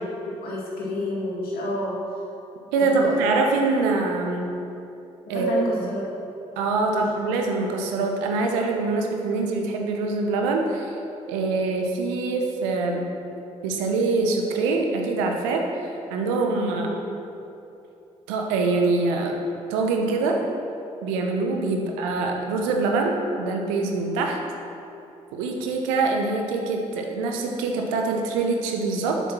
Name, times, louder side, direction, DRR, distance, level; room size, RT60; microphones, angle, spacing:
voice 1, 0.2-2.0 2.8-3.3 5.3-6.1 6.9-7.1 16.7-17.0 21.8-21.9, left 1 dB, 70° left, -4 dB, 2.0 m, -30 dB
voice 2, 2.7-4.6 5.3-5.5 6.6-10.9 11.3-13.1 13.6-15.6 16.1-16.9 18.3-19.4 19.7-20.4 21.0-24.4 25.3-29.2, right 3 dB, 80° right, 2 dB, 0.9 m, -24 dB
8.1 x 5.8 x 6.1 m, 2.8 s
hypercardioid pair, 40°, 16 cm